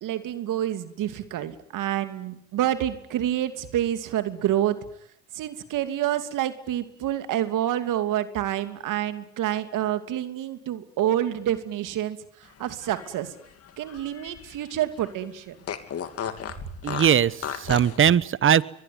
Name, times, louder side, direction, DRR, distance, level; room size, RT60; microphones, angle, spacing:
voice 1, 0.0-4.8 5.3-12.2 12.6-13.3 13.8-15.6, right 12 dB, 55° right, 10 dB, 2.8 m, -28 dB
Fart, 12.7-14.7 15.0-15.1 15.6-18.0, left 8 dB, 40° left, 2.8 m, -35 dB
voice 2, 16.8-18.6, right 9 dB, 35° right, 19 dB, 1.1 m, -20 dB
23.0 x 21.0 x 9.6 m, 0.73 s
supercardioid pair, 105°, 38 cm